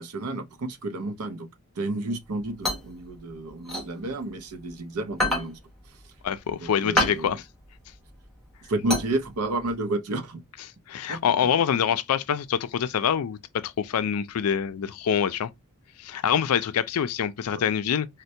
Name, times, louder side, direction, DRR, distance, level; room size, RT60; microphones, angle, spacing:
voice 1, 0.0-1.5 1.8-5.6 6.6-7.4 8.7-10.4 11.1-11.2, right 2 dB, 80° right, 0.6 m, -31 dB
sound 1, 2.2-4.7 5.1-9.7, left 1 dB, ahead, 1.1 m, -29 dB
voice 2, 6.2-7.4 10.9-15.5 16.0-18.1, left 8 dB, 80° left, 0.4 m, -25 dB
4.3 x 2.2 x 2.6 m
head